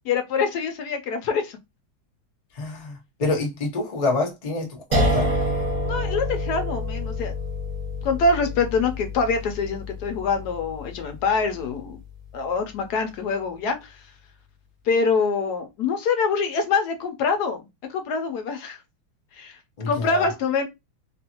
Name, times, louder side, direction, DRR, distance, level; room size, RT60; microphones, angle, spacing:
voice 1, 0.0-1.6 5.8-7.3 8.0-12.0 12.3-14.0 14.8-18.8 19.3-19.6 19.9-20.7, left 4 dB, 70° left, 1.1 m, -25 dB
voice 2, 2.5-5.3 19.8-20.3, left 2 dB, 85° left, 0.3 m, -27 dB
sound 1, 4.9-11.9, left 1 dB, 35° right, 0.7 m, -28 dB
3.0 x 2.5 x 2.8 m
omnidirectional pair, 2.0 m